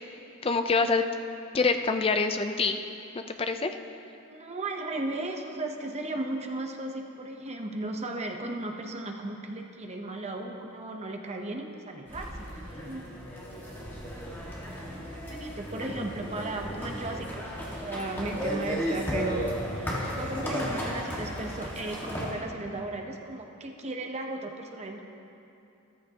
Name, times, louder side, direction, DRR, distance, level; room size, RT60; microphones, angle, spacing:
voice 1, 0.4-1.0 1.5-2.8 3.1-3.8, left 4 dB, 25° left, 7 dB, 0.4 m, -26 dB
voice 2, 4.3-13.0 15.3-25.0, right 2 dB, 30° right, 3 dB, 0.8 m, -36 dB
sound 1, 12.1-22.3, equal, 10° left, 1.6 m, -34 dB
14.0 x 14.0 x 2.9 m, 2.7 s
head